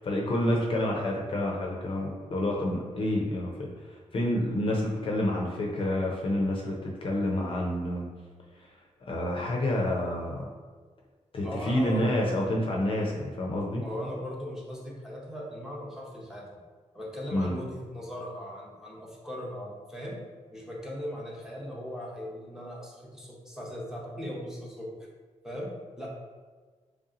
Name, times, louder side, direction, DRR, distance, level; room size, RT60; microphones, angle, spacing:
voice 1, 0.0-8.1 8.6-8.7 9.0-10.5 11.3-13.8 17.3-17.5, left 1 dB, 45° left, -1 dB, 0.5 m, -28 dB
voice 2, 11.4-12.1 13.8-16.5 16.9-20.2 20.5-25.1 25.4-26.1, equal, 5° right, -4 dB, 0.7 m, -38 dB
3.3 x 2.7 x 3.7 m, 1.5 s
wide cardioid pair, 130°, 13 cm